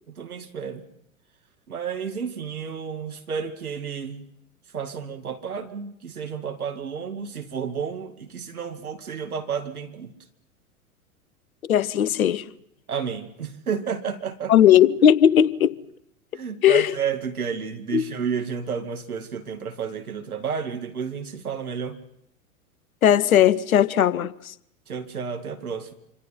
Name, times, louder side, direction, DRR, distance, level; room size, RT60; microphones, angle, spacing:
voice 1, 0.1-0.8 1.7-4.3 4.7-10.1 12.9-14.5 16.3-22.0 24.9-25.9, right 6 dB, 75° right, 2.4 m, -31 dB
voice 2, 11.7-12.4 14.5-15.8 16.6-16.9 17.9-18.0 23.0-24.5, left 10 dB, 70° left, 1.0 m, -18 dB
26.5 x 25.5 x 5.8 m
figure-of-eight pair, 90°, 44 cm